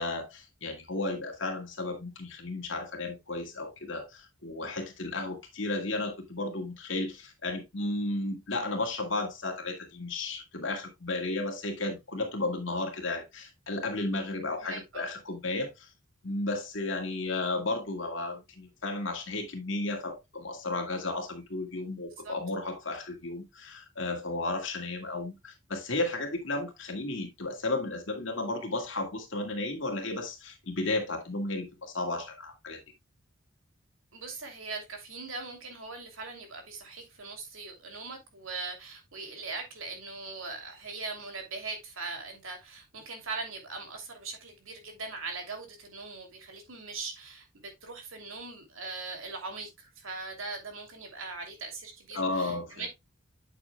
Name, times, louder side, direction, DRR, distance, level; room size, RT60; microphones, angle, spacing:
voice 1, 0.0-15.9 16.2-32.8 52.1-52.8, left 2 dB, 65° left, 2.1 m, -33 dB
voice 2, 14.5-15.1 22.2-22.3 34.1-52.9, right 3 dB, 80° right, 2.8 m, -40 dB
8.5 x 7.2 x 2.2 m
head